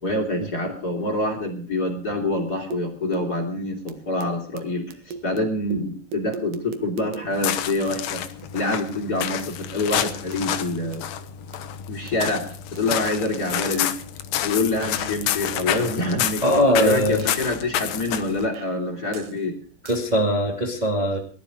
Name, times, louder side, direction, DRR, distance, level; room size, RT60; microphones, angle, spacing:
voice 1, 0.0-8.2 8.5-11.0 11.9-14.0 14.4-16.4 16.8-19.5, left 2 dB, 25° left, 2 dB, 2.3 m, -26 dB
sound 1, 2.7-3.5 3.9-4.6 4.9-7.3 7.7-9.0 9.4-9.5 10.3-10.4 10.6-10.7 10.9-11.0 11.5-11.8 12.1-13.9 14.5-15.9 16.8-17.4 17.9-18.1 18.5-18.8 19.1-19.4 19.9-20.1, right 6 dB, 70° right, 2.0 m, -39 dB
sound 2, 7.3-18.5, left 11 dB, 80° left, 2.1 m, -29 dB
voice 2, 16.4-17.3 19.8-21.2, equal, 55° right, 0 dB, 0.4 m, -20 dB
19.5 x 12.5 x 5.0 m, 0.42 s
omnidirectional pair, 5.6 m